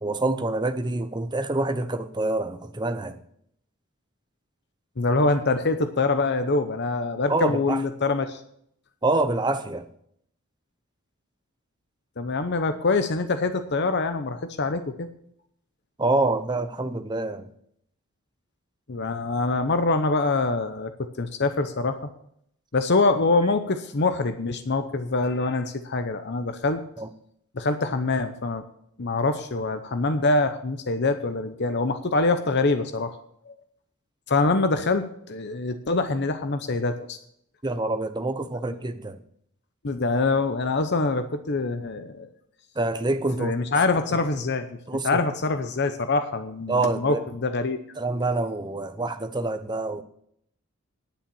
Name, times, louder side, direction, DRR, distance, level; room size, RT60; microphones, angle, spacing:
voice 1, 0.0-3.2 7.3-7.8 9.0-9.9 16.0-17.5 27.0-27.1 37.6-39.2 42.8-43.6 44.9-45.2 46.7-47.2 48.0-50.0, right 2 dB, 20° right, 0.8 m, -26 dB
voice 2, 5.0-8.4 12.2-15.1 18.9-20.9 21.2-22.1 22.7-26.8 27.5-28.6 29.0-33.2 33.4-33.5 34.3-37.2 39.8-42.3 43.4-44.8 45.0-47.8, left 3 dB, 50° left, 0.8 m, -24 dB
10.0 x 8.7 x 7.1 m
head